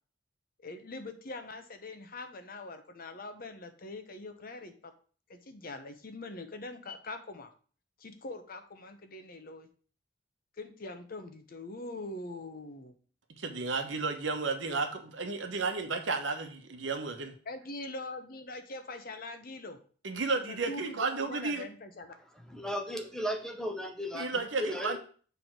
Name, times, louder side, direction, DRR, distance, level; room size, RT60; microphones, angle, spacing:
voice 1, 0.6-4.9 5.3-7.5 8.0-9.7 10.6-12.9 17.5-19.8 20.5-22.1, left 2 dB, 50° left, 0.9 m, -43 dB
voice 2, 13.4-17.3 20.0-21.7 24.1-25.0, right 4 dB, 75° right, 1.1 m, -33 dB
voice 3, 22.5-24.3 24.6-25.0, equal, 5° left, 0.8 m, -35 dB
6.7 x 3.5 x 6.0 m
head